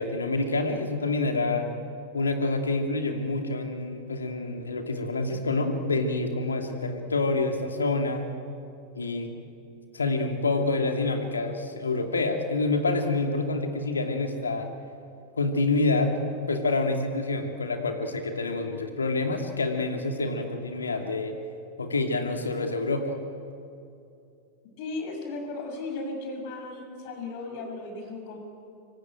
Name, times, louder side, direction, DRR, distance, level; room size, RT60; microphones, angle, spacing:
voice 1, 0.0-1.7 2.1-8.2 8.9-9.3 9.9-14.7 15.4-16.1 16.5-21.3 21.8-23.2, left 3 dB, 75° left, 4 dB, 2.7 m, -27 dB
voice 2, 24.8-28.4, left 3 dB, 45° left, 4 dB, 6.7 m, -36 dB
25.5 x 24.0 x 9.2 m, 2.6 s
figure-of-eight pair, 90°, 0 cm